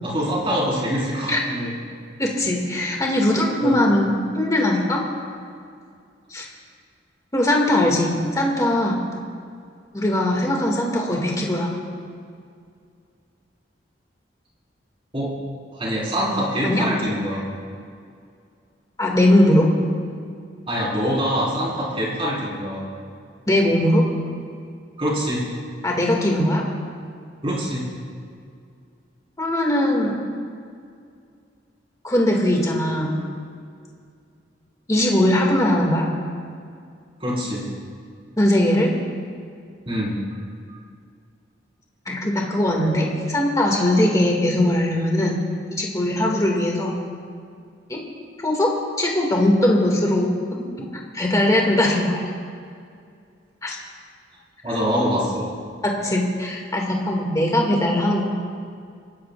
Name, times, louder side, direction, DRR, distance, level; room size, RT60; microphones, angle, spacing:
voice 1, 0.0-1.7 3.6-3.9 15.1-15.3 15.7-17.4 20.7-22.8 25.0-25.4 27.4-27.8 37.2-37.6 39.9-40.2 54.6-55.5, equal, 30° right, -6 dB, 4.6 m, -24 dB
voice 2, 2.2-4.1 4.4-5.0 6.3-6.5 7.3-9.0 9.9-11.7 16.6-16.9 19.0-19.7 23.5-24.0 25.8-26.7 29.4-30.2 32.0-33.2 34.9-36.0 38.4-38.9 42.1-45.4 45.8-46.9 47.9-48.0 48.4-48.7 49.0-50.7 50.9-52.2 53.6-53.8 55.8-58.2, left 1 dB, 20° left, -1 dB, 2.2 m, -20 dB
27.5 x 14.0 x 2.5 m, 2.3 s
head